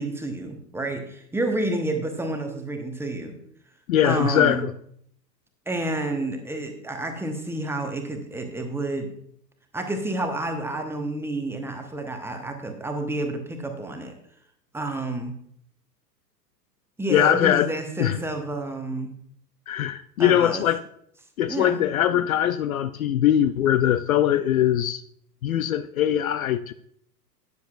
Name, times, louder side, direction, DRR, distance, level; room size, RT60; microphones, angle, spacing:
voice 1, 0.0-3.4 4.0-4.6 5.7-9.1 9.7-14.1 14.7-15.3 17.0-19.1 20.2-20.6 21.5-22.2, right 2 dB, 5° right, 4 dB, 0.9 m, -29 dB
voice 2, 3.9-4.7 17.1-17.7 18.0-18.2 19.7-20.8 21.4-25.0 25.4-26.7, left 11 dB, 55° left, 14 dB, 0.5 m, -21 dB
12.5 x 9.5 x 2.4 m, 0.68 s
figure-of-eight pair, 95°, 50 cm